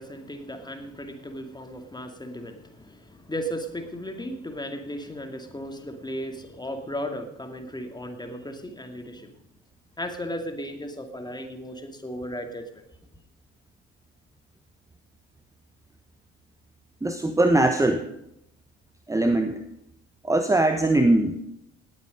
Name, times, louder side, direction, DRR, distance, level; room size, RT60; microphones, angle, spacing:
voice 1, 0.0-9.3 10.0-12.8, equal, 15° left, 6 dB, 2.3 m, -35 dB
voice 2, 17.0-18.1 19.1-19.6 20.2-21.4, right 2 dB, 10° right, 7 dB, 1.1 m, -21 dB
18.5 x 8.4 x 5.3 m, 0.78 s
figure-of-eight pair, 45°, 32 cm